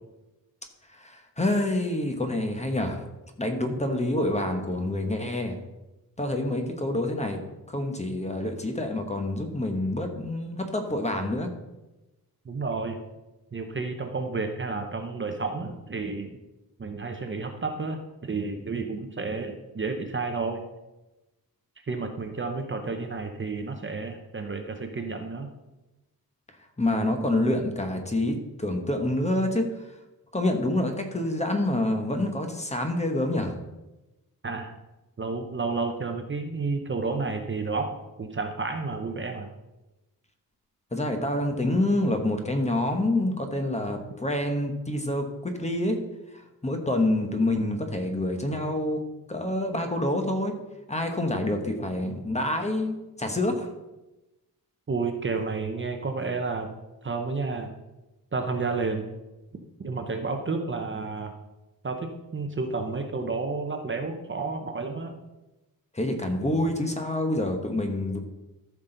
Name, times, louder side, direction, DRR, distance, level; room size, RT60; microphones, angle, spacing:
voice 1, 1.0-3.0 3.4-5.6 6.2-7.4 7.7-11.5 26.8-29.7 30.3-33.5 40.9-46.0 46.6-49.0 49.3-50.5 50.9-53.7 65.9-68.2, left 1 dB, 20° left, 4 dB, 1.1 m, -27 dB
voice 2, 12.4-13.0 13.5-16.3 16.8-20.6 21.9-25.5 34.4-34.7 35.2-39.5 54.9-56.7 57.0-57.7 58.3-59.1 59.8-61.3 61.8-65.2, right 4 dB, 30° right, 5 dB, 0.8 m, -31 dB
13.5 x 6.0 x 3.9 m, 1.0 s
wide cardioid pair, 155°, 37 cm